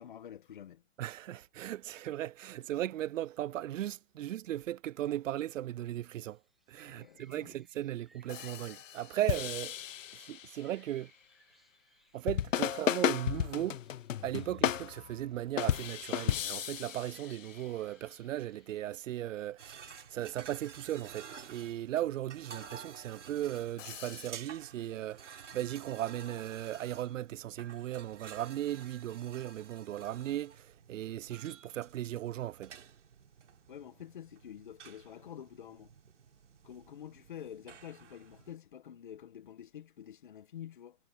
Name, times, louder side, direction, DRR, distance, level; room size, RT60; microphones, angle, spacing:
voice 1, 0.0-0.8 6.8-7.5 33.7-35.9 36.6-41.0, left 10 dB, 40° left, 1.3 m, -48 dB
voice 2, 1.0-6.4 6.7-9.8 10.1-11.1 12.1-13.8 14.2-32.8, right 13 dB, 85° right, 0.5 m, -37 dB
sound 1, 6.1-20.5, right 2 dB, ahead, 0.6 m, -68 dB
sound 2, 7.3-7.4 8.3-10.8 12.3-17.7 18.9-19.0 22.0-22.1 23.6-24.3, left 10 dB, 85° left, 0.7 m, -34 dB
sound 3, 19.6-38.6, right 6 dB, 70° right, 4.1 m, -52 dB
hypercardioid pair, 175°, 38 cm